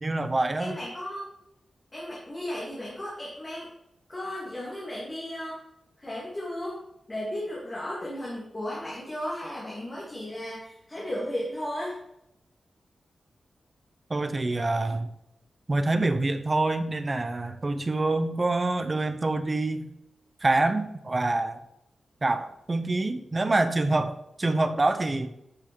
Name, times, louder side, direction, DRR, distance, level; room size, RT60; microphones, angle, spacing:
voice 1, 0.0-0.8 14.1-15.1 15.7-19.9 20.4-21.6 22.2-25.3, right 2 dB, 25° right, 9 dB, 0.7 m, -26 dB
voice 2, 0.6-1.3 1.9-3.7 4.1-5.6 6.0-6.8 7.1-11.9, left 1 dB, 20° left, -8 dB, 2.8 m, -35 dB
12.0 x 6.2 x 4.6 m, 0.83 s
wide cardioid pair, 180°, 0 cm